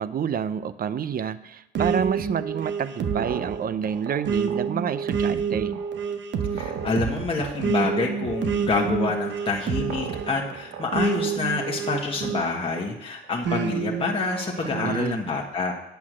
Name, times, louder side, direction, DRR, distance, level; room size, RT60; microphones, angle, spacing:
voice 1, 0.0-5.7 14.6-15.2, right 8 dB, 50° right, 15 dB, 0.6 m, -28 dB
sound 1, 1.7-12.8 13.4-15.0, right 6 dB, 65° right, 1.0 m, -28 dB
voice 2, 6.5-15.7, left 3 dB, 25° left, -1 dB, 1.4 m, -27 dB
8.5 x 8.1 x 6.2 m, 0.87 s
cardioid pair, 90°, 20 cm